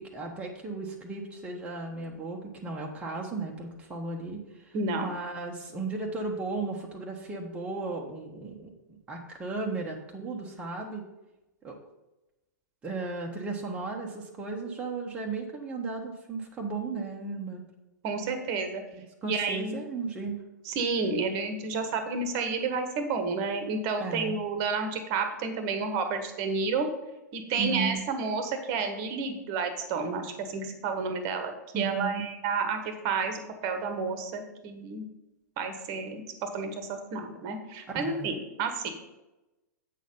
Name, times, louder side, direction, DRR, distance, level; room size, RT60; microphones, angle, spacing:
voice 1, 0.0-11.0 11.6-11.8 12.8-17.6 18.9-20.4 24.0-24.4 27.6-28.0 31.7-32.2 37.9-38.4, right 3 dB, 10° right, -1 dB, 1.0 m, -35 dB
voice 2, 4.7-5.1 18.0-18.8 19.2-19.8 20.6-26.9 27.3-35.1 35.6-38.9, right 4 dB, 35° right, 7 dB, 1.2 m, -31 dB
8.3 x 6.3 x 5.3 m, 1.0 s
figure-of-eight pair, 105°, 10 cm